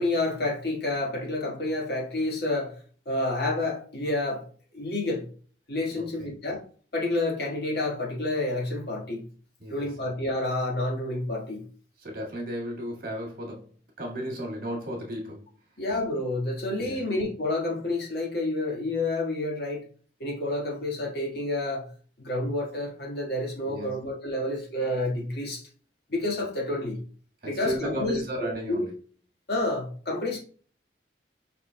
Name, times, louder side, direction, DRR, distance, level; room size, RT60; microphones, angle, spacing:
voice 1, 0.0-4.4 4.7-5.3 5.7-6.6 6.9-9.2 9.7-11.6 15.8-19.8 20.2-21.9 22.2-25.7 26.1-27.0 27.4-28.8 29.5-30.4, left 2 dB, 60° left, 1.6 m, -29 dB
voice 2, 6.0-6.3 9.6-9.9 12.0-13.7 14.0-15.5 16.8-17.0 23.7-24.0 27.4-28.9, equal, 55° right, 1.8 m, -34 dB
5.5 x 4.4 x 2.2 m
head